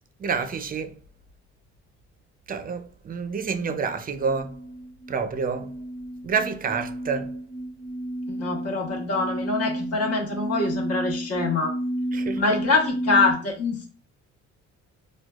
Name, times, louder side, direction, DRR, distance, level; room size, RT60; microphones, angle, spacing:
voice 1, 0.2-0.9 2.5-4.5 5.1-5.7 6.2-7.3 12.1-12.4, right 5 dB, 30° right, 0.5 m, -28 dB
sound 1, 3.9-13.3, right 1 dB, 10° left, 0.8 m, -32 dB
voice 2, 8.3-11.8 12.3-13.9, left 3 dB, 55° left, 1.2 m, -24 dB
4.4 x 2.2 x 2.4 m
cardioid pair, 90°, 30 cm